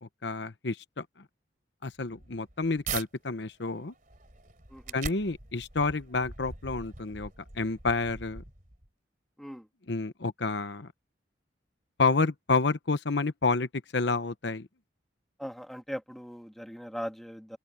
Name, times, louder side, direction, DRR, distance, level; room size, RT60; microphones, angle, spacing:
voice 1, 0.0-1.0 1.8-3.9 4.9-7.3 7.5-8.4 9.9-10.9 12.0-14.7, left 3 dB, 70° left, 1.0 m, -29 dB
sound 1, 1.9-3.1 3.6-8.9, right 5 dB, 45° right, 3.5 m, -42 dB
voice 2, 15.4-17.6, equal, ahead, 1.7 m, -39 dB
open air
head